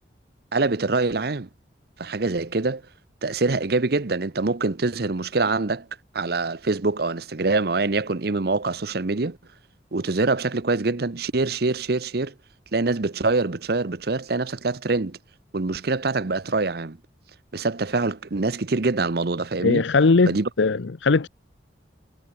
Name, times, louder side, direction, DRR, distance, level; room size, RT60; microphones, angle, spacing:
voice 1, 0.5-1.5 2.0-2.8 3.2-5.9 6.1-9.4 9.9-12.3 12.7-15.2 15.5-17.0 17.5-19.8 20.3-20.5, right 3 dB, 55° right, 0.8 m, -24 dB
voice 2, 19.6-21.3, left 4 dB, 85° left, 0.7 m, -19 dB
head